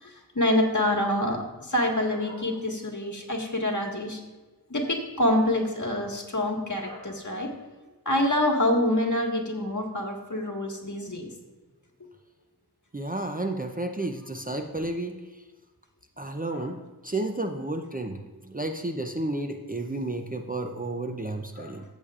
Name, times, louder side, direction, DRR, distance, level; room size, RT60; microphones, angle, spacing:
voice 1, 0.0-4.2 4.7-7.5 8.1-11.3 16.5-16.7 21.6-21.7, left 1 dB, 50° left, 1 dB, 1.8 m, -26 dB
voice 2, 12.9-15.2 16.2-21.8, right 2 dB, 25° right, 4 dB, 0.6 m, -32 dB
14.0 x 8.3 x 2.4 m, 1.2 s
wide cardioid pair, 60°, 38 cm